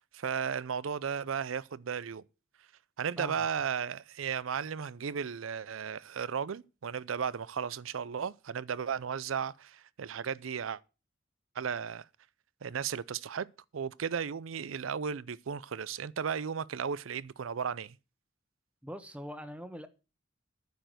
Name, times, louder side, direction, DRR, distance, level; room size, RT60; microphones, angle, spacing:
voice 1, 0.1-2.2 3.0-10.8 11.6-12.1 12.6-13.5 13.7-18.0, right 7 dB, 90° right, 0.5 m, -35 dB
voice 2, 18.8-19.9, equal, 5° right, 1.1 m, -42 dB
9.4 x 6.8 x 7.6 m
head